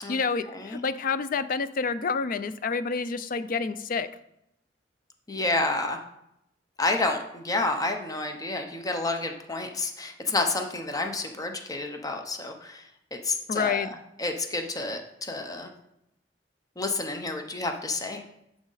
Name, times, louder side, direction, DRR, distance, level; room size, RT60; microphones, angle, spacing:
voice 1, 0.1-4.1 13.5-13.9, left 5 dB, 50° left, 13 dB, 0.4 m, -28 dB
voice 2, 5.3-6.0 6.8-15.7 16.8-18.2, left 2 dB, 20° left, 4 dB, 0.7 m, -30 dB
11.0 x 4.9 x 4.0 m, 0.81 s
head